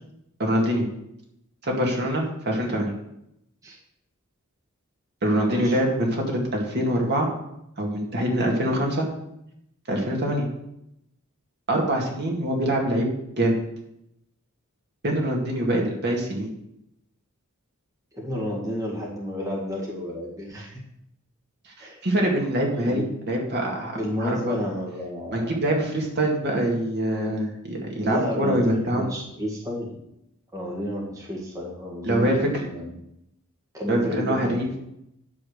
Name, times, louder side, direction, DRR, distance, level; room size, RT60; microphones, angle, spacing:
voice 1, 0.4-0.9 1.6-2.9 5.2-7.3 7.8-9.1 9.9-10.5 11.7-13.1 13.4-13.6 15.0-16.5 21.8-23.9 24.2-24.5 25.3-29.1 32.0-32.4 33.9-34.7, right 1 dB, 50° right, 0 dB, 2.2 m, -24 dB
voice 2, 5.4-5.8 18.1-20.8 21.8-22.0 22.8-23.1 23.9-25.6 28.0-30.0 30.5-32.9 33.7-34.7, equal, 15° right, -3 dB, 1.7 m, -31 dB
10.0 x 5.3 x 6.6 m, 0.80 s
head